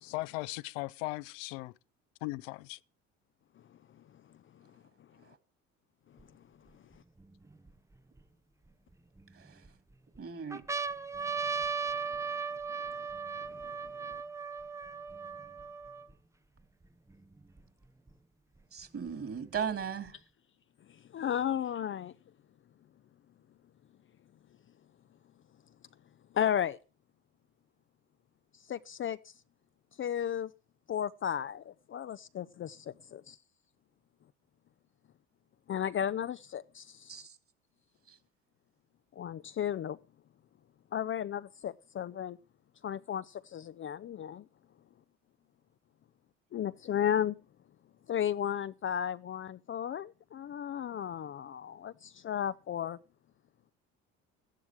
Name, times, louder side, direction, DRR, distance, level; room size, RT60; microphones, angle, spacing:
voice 1, 0.0-1.7 2.2-2.8, left 20 dB, 75° left, 0.6 m, -38 dB
sound 1, 6.2-6.3 6.9-8.2 8.9-9.7 10.2-10.3 10.5-16.1 16.8-16.9 17.1-18.1 19.1-20.1, right 5 dB, 10° right, 0.6 m, -37 dB
voice 2, 9.3-9.7 10.2-10.6 18.7-20.2 37.1-37.4 38.1-38.2, right 7 dB, 35° right, 2.8 m, -37 dB
voice 3, 21.1-22.1 26.3-26.8 28.7-29.3 30.0-30.5 30.9-33.4 35.7-37.3 39.2-40.0 40.9-42.4 42.8-44.4 46.5-47.4 48.1-53.0, left 9 dB, 35° left, 0.5 m, -34 dB
14.0 x 11.5 x 4.7 m
hypercardioid pair, 65°, 37 cm